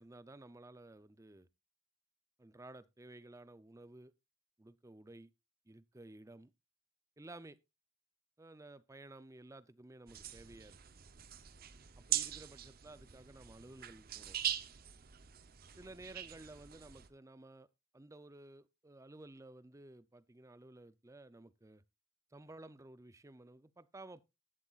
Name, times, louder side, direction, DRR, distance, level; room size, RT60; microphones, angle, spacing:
voice 1, 0.0-1.5 2.4-4.1 4.6-5.3 5.7-6.5 7.2-7.6 8.4-10.8 12.0-14.4 15.8-17.7 17.9-21.8 22.3-24.2, right 2 dB, 15° right, 0.5 m, -54 dB
sound 1, 10.1-17.1, right 11 dB, 50° right, 0.7 m, -42 dB
11.5 x 11.0 x 2.4 m
head